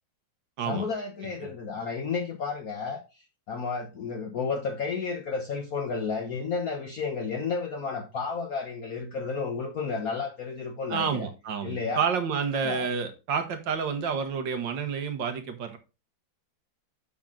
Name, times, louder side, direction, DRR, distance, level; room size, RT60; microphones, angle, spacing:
voice 1, 0.6-11.3 11.6-12.0 12.6-12.9, left 5 dB, 55° left, 2 dB, 1.3 m, -32 dB
voice 2, 10.9-15.8, right 6 dB, 75° right, 8 dB, 1.9 m, -29 dB
7.3 x 6.0 x 3.8 m, 0.28 s
omnidirectional pair, 2.1 m